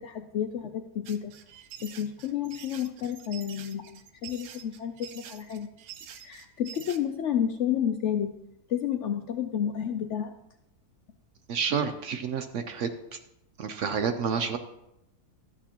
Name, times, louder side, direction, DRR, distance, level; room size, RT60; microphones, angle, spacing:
voice 1, 0.0-1.3 1.8-5.7 6.2-8.3 8.7-10.3, left 9 dB, 70° left, 7 dB, 0.7 m, -31 dB
sound 1, 1.1-7.0, right 10 dB, 85° right, 1.2 m, -46 dB
voice 2, 11.5-13.2 13.6-14.6, right 6 dB, 65° right, 8 dB, 0.8 m, -29 dB
12.5 x 8.2 x 2.9 m, 0.86 s
omnidirectional pair, 1.6 m